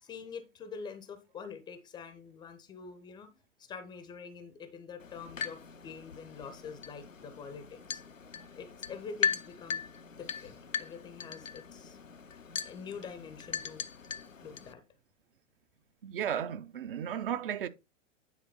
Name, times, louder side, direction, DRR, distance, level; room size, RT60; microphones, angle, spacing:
voice 1, 0.0-3.3 3.6-8.0 8.6-9.8 10.2-12.0 12.6-13.8 14.4-14.8, left 6 dB, 10° left, 0.6 m, -46 dB
sound 1, 5.0-14.7, left 6 dB, 90° left, 0.6 m, -39 dB
voice 2, 16.0-17.7, right 9 dB, 45° right, 0.7 m, -34 dB
9.4 x 4.1 x 4.2 m
figure-of-eight pair, 105°, 38 cm